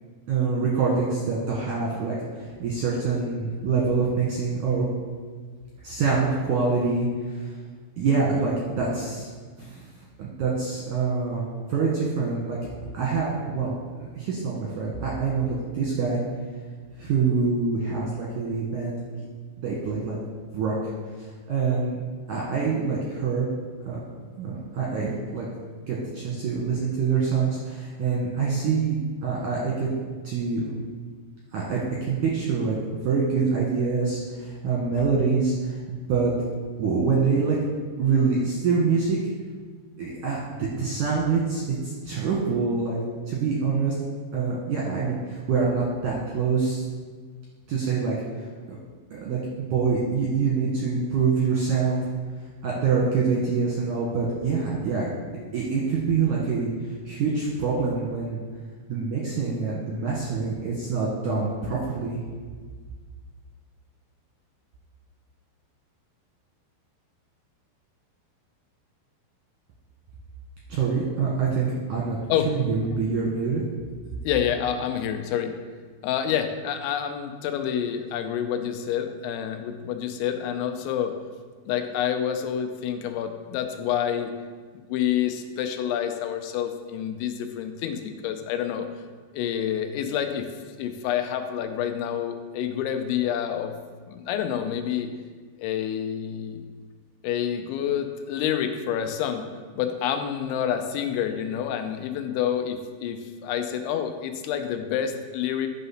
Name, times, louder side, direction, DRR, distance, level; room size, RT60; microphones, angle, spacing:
voice 1, 0.3-4.9 5.8-7.5 8.0-9.3 9.6-9.8 10.2-11.4 11.7-12.6 12.9-13.7 14.0-16.2 17.0-19.0 19.6-20.2 20.5-20.7 21.5-22.0 22.3-23.5 23.9-24.0 24.4-25.5 25.9-29.0 29.2-29.9 30.2-30.6 31.5-32.8 33.0-36.3 36.8-37.6 38.0-39.2 40.0-43.0 43.3-43.9 44.3-46.8 47.7-48.1 48.7-48.8 49.1-49.4 49.7-52.0 52.6-55.1 55.5-56.7 57.1-58.4 58.9-62.2 70.7-72.2 72.5-73.6, right 5 dB, 70° right, -4 dB, 1.9 m, -25 dB
voice 2, 74.2-75.5 76.0-81.1 81.7-84.3 84.7-88.9 89.3-90.5 90.8-93.8 94.1-95.1 95.6-96.6 97.2-99.5 99.8-105.7, left 9 dB, 85° left, 7 dB, 3.0 m, -28 dB
11.5 x 4.2 x 5.7 m, 1.5 s
omnidirectional pair, 5.3 m